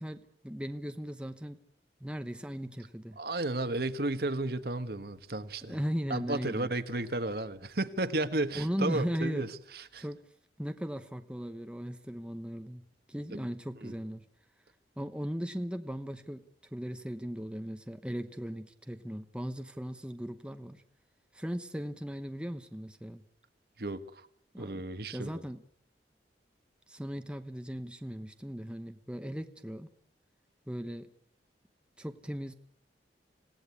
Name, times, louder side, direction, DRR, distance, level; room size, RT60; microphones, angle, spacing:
voice 1, 0.0-1.6 2.0-3.2 5.7-6.7 8.5-9.5 10.0-10.2 10.6-12.8 13.1-14.2 15.0-16.4 16.7-20.8 21.3-23.2 24.5-24.8 25.1-25.6 26.9-29.9 30.7-31.1 32.0-32.5, equal, 5° right, 8 dB, 0.9 m, -37 dB
voice 2, 3.2-5.8 6.1-9.5 9.7-10.0 13.3-13.5 13.8-13.9 23.8-24.3 24.6-25.4, right 2 dB, 55° right, 10 dB, 1.5 m, -33 dB
26.5 x 17.5 x 8.5 m, 0.68 s
head